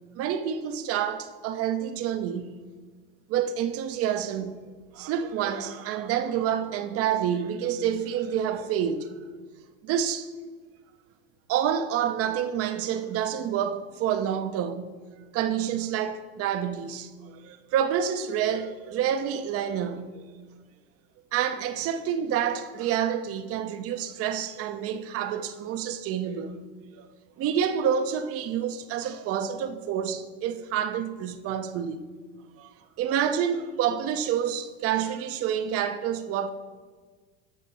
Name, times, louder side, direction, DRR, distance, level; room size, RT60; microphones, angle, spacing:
voice 1, 0.2-2.5 3.3-4.6 4.9-9.1 9.8-10.3 11.5-15.0 15.3-17.1 17.4-20.2 21.3-26.6 27.0-27.1 27.4-32.0 32.6-36.5, right 9 dB, 50° right, 1.0 m, -28 dB
13.0 x 6.3 x 4.3 m
hypercardioid pair, 80°, 31 cm